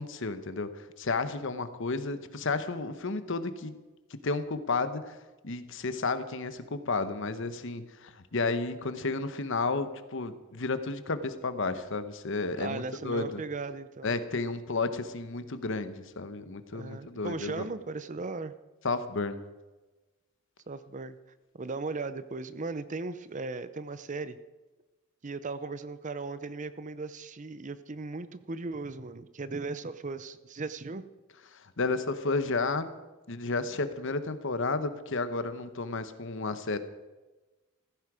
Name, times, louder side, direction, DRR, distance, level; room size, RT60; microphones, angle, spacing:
voice 1, 0.0-3.8 4.2-5.2 5.4-13.4 14.0-17.6 18.8-19.4 31.5-32.9 33.3-36.8, left 3 dB, 60° left, 11 dB, 1.0 m, -32 dB
voice 2, 12.6-14.2 16.7-18.5 20.7-21.2 21.6-24.4 25.2-31.0, right 3 dB, 35° right, 14 dB, 0.6 m, -37 dB
15.5 x 14.5 x 5.0 m, 1.2 s
head